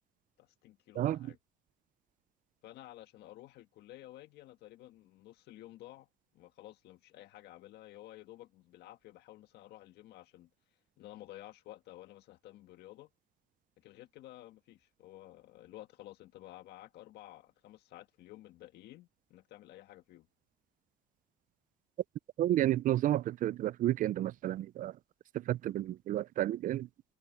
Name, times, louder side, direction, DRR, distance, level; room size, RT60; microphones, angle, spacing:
voice 1, 0.4-1.4 2.6-6.1 6.3-10.5 11.0-13.1 13.8-20.3, left 15 dB, 80° left, 1.6 m, -53 dB
voice 2, 22.4-24.9 25.3-26.9, right 13 dB, 55° right, 0.4 m, -31 dB
cardioid pair, 110°, 17 cm